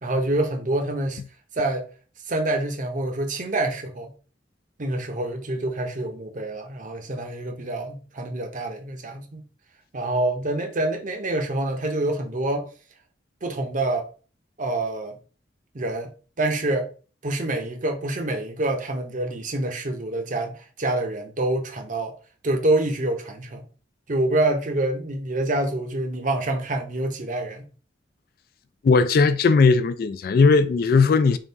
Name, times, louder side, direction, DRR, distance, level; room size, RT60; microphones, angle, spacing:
voice 1, 0.0-1.2 1.6-1.9 2.3-4.1 4.8-9.4 9.9-12.7 13.4-14.1 14.6-15.2 15.7-16.1 16.4-16.9 17.2-22.2 22.4-23.7 24.1-27.6, right 2 dB, 45° right, 0.7 m, -26 dB
voice 2, 28.8-31.4, left 4 dB, 50° left, 0.3 m, -18 dB
3.7 x 2.3 x 4.0 m
head